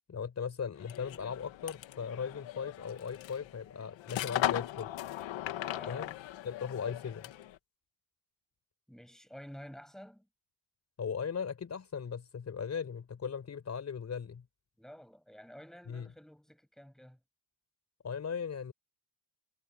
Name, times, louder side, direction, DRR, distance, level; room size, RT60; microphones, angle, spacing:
voice 1, 0.1-4.9 5.9-6.1 6.4-7.3 11.0-14.4 15.9-16.1 18.0-18.7, left 6 dB, 35° left, 4.6 m, -38 dB
sound 1, 0.8-7.6, left 14 dB, 85° left, 1.8 m, -38 dB
voice 2, 5.6-6.2 8.9-10.3 14.8-17.2, equal, ahead, 6.6 m, -51 dB
cardioid pair, 140°, 44 cm